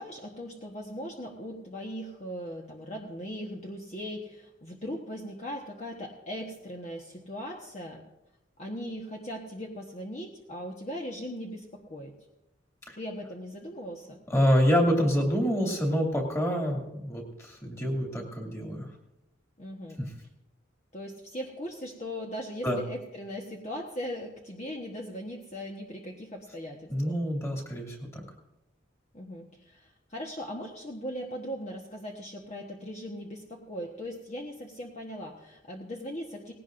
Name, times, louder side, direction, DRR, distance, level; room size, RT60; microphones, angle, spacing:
voice 1, 0.0-8.0 8.6-12.1 12.9-14.2 19.6-20.0 20.9-27.2 29.1-36.5, equal, 35° left, -1 dB, 1.3 m, -39 dB
voice 2, 14.3-18.9 20.0-20.1 22.6-22.8 26.9-28.2, equal, 15° left, 0 dB, 2.5 m, -27 dB
19.0 x 17.0 x 2.6 m, 0.91 s
head